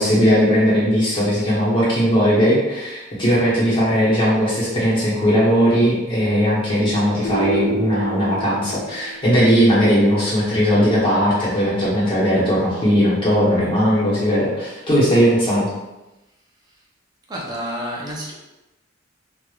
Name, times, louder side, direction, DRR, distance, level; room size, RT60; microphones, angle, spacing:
voice 1, 0.0-15.7, equal, 25° left, -8 dB, 1.0 m, -18 dB
sound 1, 7.2-9.4, right 2 dB, 40° left, 0.3 m, -29 dB
voice 2, 17.3-18.3, equal, 20° right, -3 dB, 0.5 m, -29 dB
3.2 x 2.4 x 2.3 m, 1.0 s
head